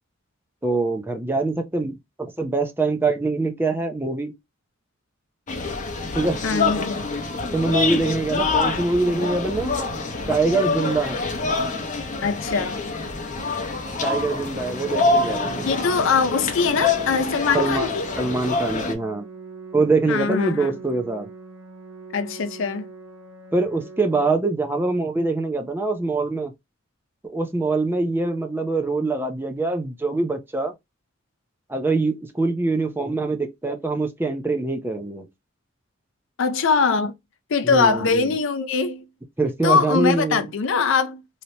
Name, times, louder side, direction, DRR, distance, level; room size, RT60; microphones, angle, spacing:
voice 1, 0.6-4.3 6.1-6.4 7.5-9.7 10.3-11.2 14.0-15.7 17.5-17.9 18.2-19.3 19.7-21.3 23.5-26.5 27.2-30.7 31.7-35.3 37.6-38.3 39.4-40.4, right 3 dB, 10° right, 0.5 m, -24 dB
sound 1, 5.5-18.9, left 3 dB, 40° left, 0.8 m, -26 dB
voice 2, 6.4-7.0 12.2-12.9 15.6-18.1 20.1-20.7 22.1-22.9 36.4-37.1 37.5-39.1 39.6-41.4, left 5 dB, 65° left, 0.5 m, -22 dB
Organ, 14.1-25.1, right 4 dB, 80° right, 0.8 m, -42 dB
3.2 x 2.8 x 2.8 m
head